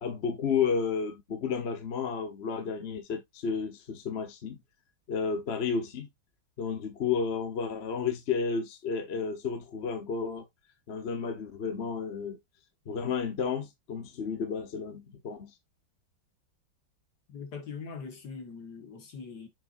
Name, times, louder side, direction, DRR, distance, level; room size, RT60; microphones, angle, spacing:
voice 1, 0.0-4.6 5.1-6.1 6.6-10.4 10.9-12.4 12.9-15.5, left 6 dB, 40° left, 1.0 m, -32 dB
voice 2, 17.3-19.5, left 5 dB, 60° left, 2.0 m, -42 dB
7.2 x 5.7 x 2.5 m
omnidirectional pair, 2.1 m